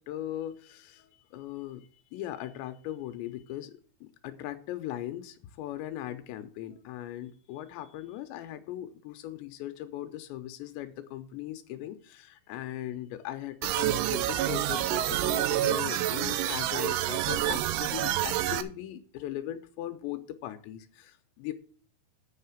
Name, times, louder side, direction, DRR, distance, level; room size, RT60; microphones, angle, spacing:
voice 1, 0.0-21.5, left 13 dB, 85° left, 8 dB, 2.9 m, -39 dB
sound 1, 13.6-18.6, right 13 dB, 85° right, 2.5 m, -28 dB
8.2 x 5.7 x 7.0 m, 0.43 s
omnidirectional pair, 5.2 m